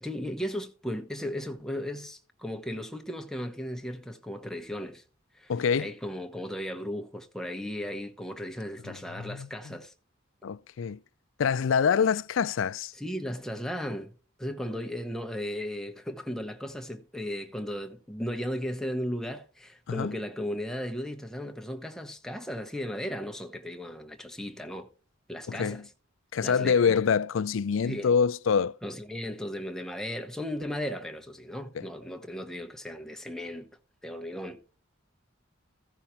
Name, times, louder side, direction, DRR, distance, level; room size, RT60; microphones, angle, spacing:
voice 1, 0.0-5.0 5.4-9.9 13.0-24.9 25.3-25.8 26.4-27.0 27.8-28.1 28.8-33.7 34.0-34.8, equal, 5° left, 1.0 m, -36 dB
voice 2, 5.5-5.9 8.8-9.8 10.4-11.0 11.4-12.9 19.9-20.2 25.5-25.8 26.3-28.7 31.7-31.9, left 6 dB, 70° left, 0.4 m, -26 dB
14.5 x 5.7 x 4.4 m
head